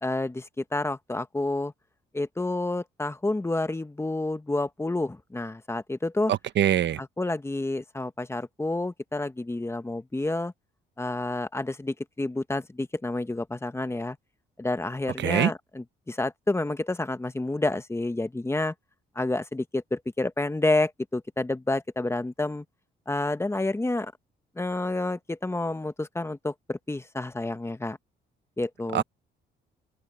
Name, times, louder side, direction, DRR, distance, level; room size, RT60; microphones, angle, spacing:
voice 1, 0.0-1.7 2.1-6.3 7.0-10.5 11.0-14.2 14.6-18.7 19.1-22.6 23.1-24.1 24.6-28.0 28.6-29.0, left 2 dB, 15° left, 1.2 m, -29 dB
voice 2, 6.3-7.0 15.2-15.5 28.9-29.0, right 11 dB, 65° right, 0.9 m, -23 dB
open air
cardioid pair, 90°, 20 cm